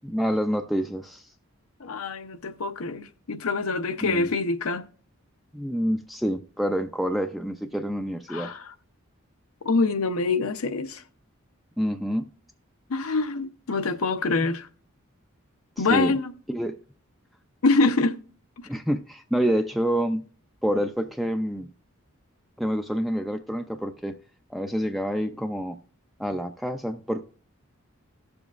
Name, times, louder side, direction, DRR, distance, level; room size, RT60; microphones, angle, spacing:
voice 1, 0.0-1.3 4.0-4.3 5.5-8.5 11.8-12.3 15.8-16.1 16.5-16.8 18.6-20.2 20.6-21.7 22.6-24.1 24.5-25.8 26.2-27.2, equal, ahead, 0.3 m, -27 dB
voice 2, 1.8-4.9 8.3-8.7 9.6-11.0 12.9-14.7 15.8-16.3 17.6-18.2, left 3 dB, 85° left, 0.7 m, -25 dB
17.5 x 7.0 x 2.4 m
head